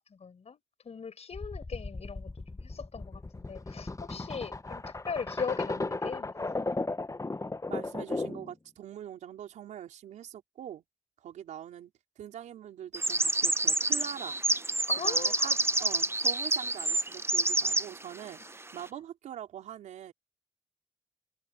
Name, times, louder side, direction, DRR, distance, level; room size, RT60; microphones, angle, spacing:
voice 1, 0.0-2.3 2.6-6.3 14.9-15.6, left 6 dB, 60° left, 5.5 m, -39 dB
sound 1, 1.3-8.5, left 2 dB, 25° left, 1.3 m, -36 dB
voice 2, 7.7-10.8 11.2-11.9 12.2-14.4 15.0-15.5 15.8-20.1, right 10 dB, 90° right, 4.7 m, -43 dB
sound 2, 12.9-17.9, right 2 dB, 20° right, 1.0 m, -28 dB
supercardioid pair, 45°, 12 cm